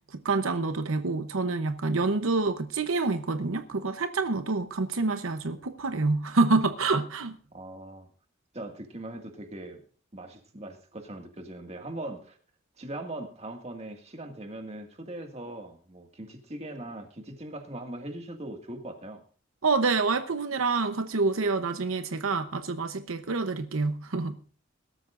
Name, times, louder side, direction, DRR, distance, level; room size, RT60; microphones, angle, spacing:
voice 1, 0.2-7.4 19.6-24.4, right 3 dB, 85° right, 9 dB, 0.9 m, -27 dB
voice 2, 7.5-8.1 8.5-9.8 10.1-12.4 12.8-19.2, right 1 dB, 30° right, 4 dB, 2.0 m, -40 dB
21.5 x 13.0 x 2.5 m, 0.40 s
head